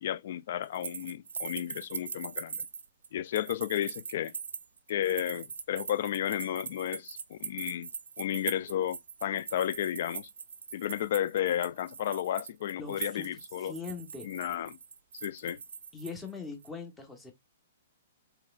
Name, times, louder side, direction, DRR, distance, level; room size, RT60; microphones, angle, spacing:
voice 1, 0.0-2.6 3.1-4.3 4.9-7.9 8.2-10.3 10.7-13.7 14.2-14.8 15.1-15.6, left 11 dB, 60° left, 0.4 m, -32 dB
sound 1, 0.6-16.3 16.6-16.7, right 6 dB, 90° right, 0.5 m, -41 dB
voice 2, 12.8-13.3 13.6-14.3 15.9-17.3, left 4 dB, 10° left, 1.0 m, -41 dB
4.7 x 3.3 x 2.3 m
hypercardioid pair, 145°, 0 cm